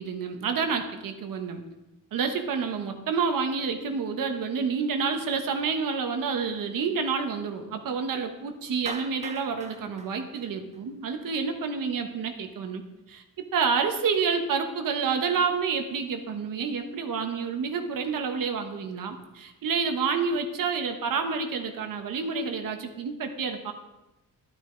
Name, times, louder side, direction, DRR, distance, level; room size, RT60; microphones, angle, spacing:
voice 1, 0.0-1.6 2.1-12.8 13.1-13.2 13.5-23.7, right 5 dB, 80° right, 5 dB, 1.3 m, -29 dB
Clapping, 8.9-11.2, right 4 dB, 20° right, 0.7 m, -42 dB
11.5 x 9.8 x 3.9 m, 0.99 s
cardioid pair, 105°, 33 cm